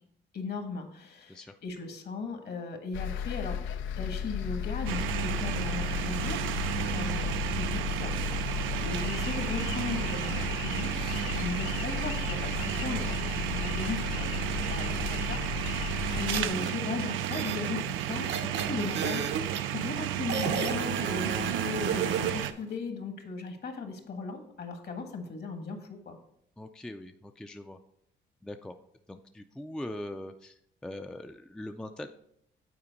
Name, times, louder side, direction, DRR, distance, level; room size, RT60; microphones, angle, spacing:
voice 1, 0.3-3.6 4.0-14.3 14.7-19.3 19.6-26.2, left 4 dB, 55° left, 5 dB, 1.4 m, -37 dB
sound 1, 2.9-16.5, left 8 dB, 80° left, 0.5 m, -34 dB
sound 2, 4.9-22.5, right 12 dB, 85° right, 0.4 m, -33 dB
sound 3, 16.3-16.7 17.2-19.6 20.3-22.5, right 7 dB, 65° right, 0.8 m, -33 dB
voice 2, 26.6-27.8 28.4-28.7 29.1-32.1, left 1 dB, 5° left, 6 dB, 0.4 m, -41 dB
8.7 x 4.3 x 4.0 m, 0.71 s
cardioid pair, 90°, 20 cm